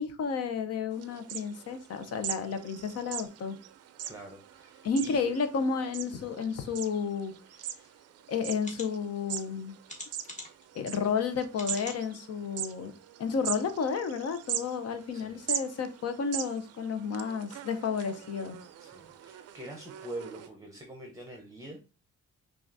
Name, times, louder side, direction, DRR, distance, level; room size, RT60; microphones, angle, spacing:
voice 1, 0.0-3.6 4.8-7.3 8.3-9.7 10.7-12.9 13.2-18.6, left 5 dB, 55° left, 9 dB, 0.7 m, -31 dB
sound 1, 0.9-20.5, right 10 dB, 55° right, 0.4 m, -41 dB
voice 2, 4.0-5.2 15.1-15.4 18.8-21.8, right 1 dB, 10° right, 2 dB, 0.8 m, -44 dB
sound 2, 7.8-7.9 8.6-8.9 9.9-10.6 11.5-12.0 12.6-12.7 13.0-13.1, left 1 dB, 25° left, 1.5 m, -42 dB
5.8 x 2.5 x 2.6 m, 0.32 s
cardioid pair, 90°, 30 cm